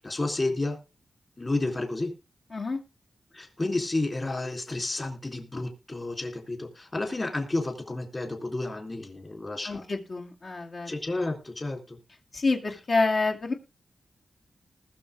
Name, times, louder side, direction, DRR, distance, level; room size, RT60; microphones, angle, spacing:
voice 1, 0.0-0.8 1.4-2.1 3.3-9.8 10.9-12.0, left 2 dB, 30° left, 2 dB, 3.8 m, -31 dB
voice 2, 9.6-10.9 12.3-13.5, left 3 dB, 55° left, 1 dB, 2.4 m, -27 dB
20.0 x 6.6 x 3.6 m, 0.30 s
wide cardioid pair, 90°, 0 cm